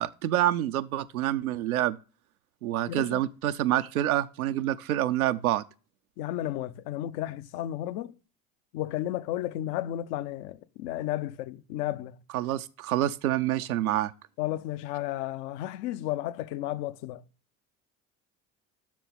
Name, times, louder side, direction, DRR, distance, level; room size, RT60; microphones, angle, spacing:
voice 1, 0.0-2.0 2.6-5.6 12.3-14.1, right 13 dB, 85° right, 0.6 m, -27 dB
voice 2, 2.9-3.2 6.2-8.2 8.7-12.2 14.4-17.2, left 13 dB, 65° left, 0.8 m, -33 dB
7.6 x 6.1 x 7.0 m
hypercardioid pair, 65°, 42 cm